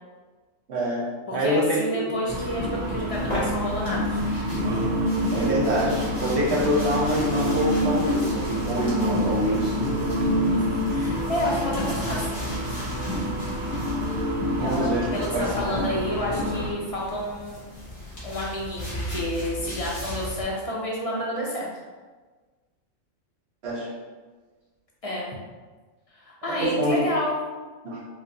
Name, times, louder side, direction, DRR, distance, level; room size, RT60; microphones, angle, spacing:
voice 1, 0.7-2.2 5.1-9.8 14.6-15.1 15.3-15.8 23.6-23.9 26.5-27.1 27.8-28.0, equal, 55° right, -4 dB, 0.9 m, -26 dB
voice 2, 1.3-4.2 10.2-12.4 14.6-17.7 18.2-21.7 25.0-25.3 26.1-27.4, left 1 dB, 55° left, -4 dB, 0.4 m, -30 dB
sound 1, 2.3-16.7, equal, 90° right, 1.2 m, -27 dB
sound 2, 3.1-15.9 16.9-20.4, equal, 30° left, 1.1 m, -38 dB
4.9 x 2.1 x 2.7 m, 1.3 s
omnidirectional pair, 1.5 m